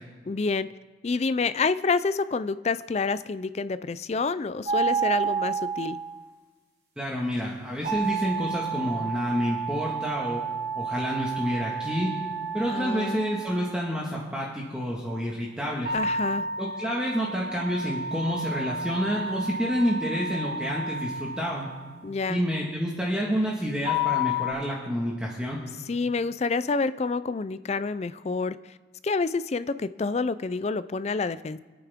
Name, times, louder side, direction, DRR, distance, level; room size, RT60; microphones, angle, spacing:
voice 1, 0.3-0.7 1.0-6.0 12.7-13.2 15.9-16.4 22.0-22.4 25.9-28.6 29.0-31.6, left 4 dB, 35° left, 15 dB, 0.4 m, -28 dB
sound 1, 4.6-6.2 7.8-13.9 15.9-22.0 23.8-24.5, right 2 dB, 40° right, 5.2 m, -31 dB
voice 2, 7.0-10.4 10.7-12.1 12.5-15.9 16.6-21.7 22.3-25.6, equal, 5° right, -4 dB, 1.6 m, -29 dB
26.0 x 9.2 x 3.6 m, 1.4 s
head